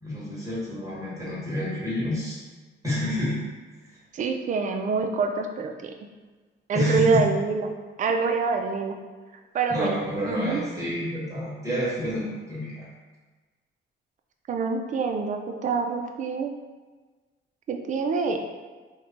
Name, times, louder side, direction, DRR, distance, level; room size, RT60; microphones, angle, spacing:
voice 1, 0.0-2.4 2.8-3.4 6.7-7.2 9.7-12.9, equal, 15° right, -8 dB, 1.1 m, -28 dB
voice 2, 4.1-5.9 6.7-7.7 8.0-9.0 9.5-10.0 10.3-10.6 14.5-16.5 17.7-18.4, right 4 dB, 40° right, 4 dB, 0.4 m, -26 dB
3.0 x 2.2 x 3.8 m, 1.3 s
cardioid pair, 90°, 20 cm